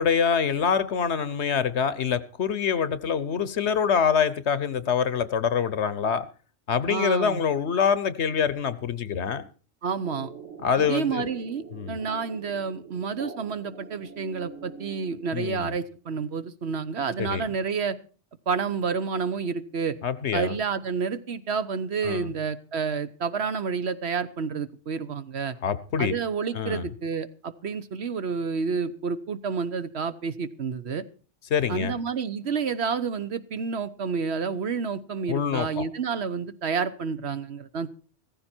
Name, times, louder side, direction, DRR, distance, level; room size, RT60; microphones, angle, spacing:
voice 1, 0.0-6.3 6.7-9.4 10.6-11.3 11.7-12.0 15.3-15.7 17.2-17.4 20.0-20.5 22.0-22.3 25.6-26.1 26.5-26.9 31.5-31.9 35.3-35.9, left 7 dB, 65° left, 15 dB, 1.1 m, -25 dB
voice 2, 6.9-7.4 9.8-10.3 10.8-18.0 18.5-20.0 20.3-25.5 26.0-31.0 31.7-37.9, right 5 dB, 60° right, 12 dB, 1.1 m, -29 dB
sound 1, 10.0-15.6, right 5 dB, 80° right, 2.7 m, -44 dB
16.0 x 14.5 x 4.4 m, 0.38 s
omnidirectional pair, 1.3 m